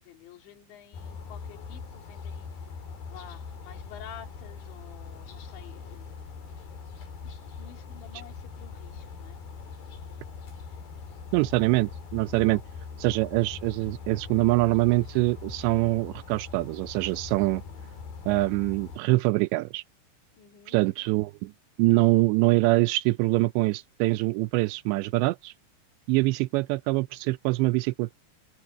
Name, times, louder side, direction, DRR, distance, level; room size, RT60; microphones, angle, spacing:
voice 1, 0.0-6.3 7.2-10.4 10.7-11.5 12.3-12.6 17.7-17.9 20.3-20.8, left 9 dB, 75° left, 5.0 m, -51 dB
sound 1, 0.9-19.0, left 5 dB, 55° left, 5.4 m, -42 dB
voice 2, 11.3-12.6 13.0-17.6 18.3-19.8 20.7-21.5 21.8-25.5 26.1-28.1, right 21 dB, 85° right, 2.6 m, -24 dB
open air
omnidirectional pair, 5.3 m